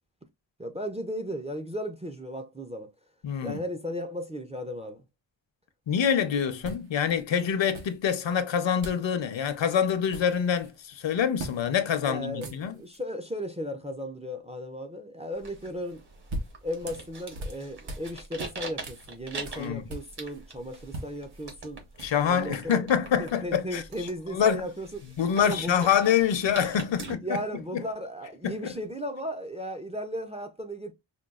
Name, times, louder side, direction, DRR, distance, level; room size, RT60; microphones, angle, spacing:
voice 1, 0.6-2.9 3.4-5.0 12.0-16.0 16.6-21.8 22.2-22.8 23.2-25.9 27.0-30.9, equal, 15° right, 0.3 m, -35 dB
voice 2, 3.2-3.6 5.9-12.8 19.5-19.9 22.0-24.6 25.2-27.4 27.7-27.8 28.4-28.8, left 8 dB, 70° left, 0.6 m, -26 dB
sound 1, 5.9-6.1 6.6-7.2 7.7-8.4 8.8-9.1 9.4-9.6 9.9-10.8 11.4-11.6 11.9-12.0 12.3-13.0 15.9-18.1 18.4-20.4 20.7-22.4, right 1 dB, 80° right, 0.9 m, -41 dB
sound 2, 15.3-27.1, right 3 dB, 60° right, 1.2 m, -44 dB
5.1 x 2.2 x 2.3 m
wide cardioid pair, 135°, 46 cm